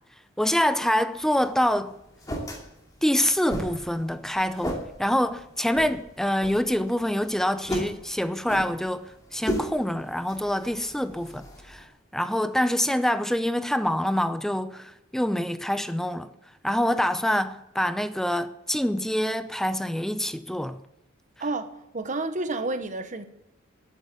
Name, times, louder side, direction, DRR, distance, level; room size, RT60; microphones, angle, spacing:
voice 1, 0.4-2.0 3.0-11.9 12.1-16.3 16.6-20.8, equal, ahead, 0.6 m, -26 dB
sound 1, 1.1-11.8, equal, 20° left, 2.7 m, -37 dB
voice 2, 21.4-23.2, right 2 dB, 40° right, 1.1 m, -30 dB
12.0 x 9.1 x 8.3 m
head